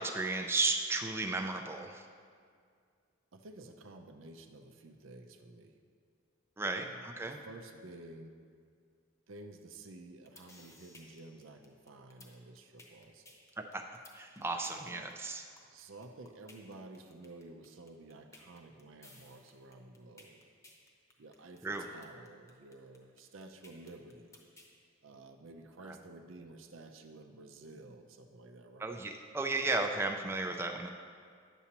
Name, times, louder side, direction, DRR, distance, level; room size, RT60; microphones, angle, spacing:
voice 1, 0.0-2.1 6.6-7.4 13.7-13.8 14.1-15.4 21.6-21.9 25.8-26.0 28.8-30.9, right 3 dB, 10° right, 4 dB, 0.3 m, -34 dB
voice 2, 3.3-5.8 6.6-8.4 9.3-13.3 14.8-15.1 15.6-20.4 21.2-24.4 25.0-29.0, right 2 dB, 80° right, 5 dB, 0.6 m, -52 dB
sound 1, 10.0-24.7, left 1 dB, 15° left, 0.8 m, -57 dB
9.6 x 7.0 x 2.9 m, 2.2 s
head